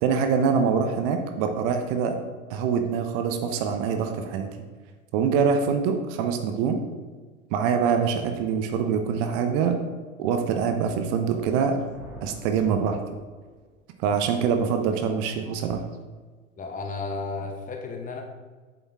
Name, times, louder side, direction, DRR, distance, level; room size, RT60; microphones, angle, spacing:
voice 1, 0.0-2.2 2.5-4.5 5.1-6.8 7.5-9.8 10.2-11.9 12.2-13.0 14.0-15.8, right 6 dB, 40° right, 6 dB, 0.9 m, -24 dB
Thunder, 11.6-13.8, right 1 dB, 5° right, 1.6 m, -47 dB
voice 2, 16.6-18.2, left 3 dB, 20° left, 3 dB, 1.1 m, -33 dB
8.0 x 7.1 x 3.6 m, 1.4 s
figure-of-eight pair, 85°, 40 cm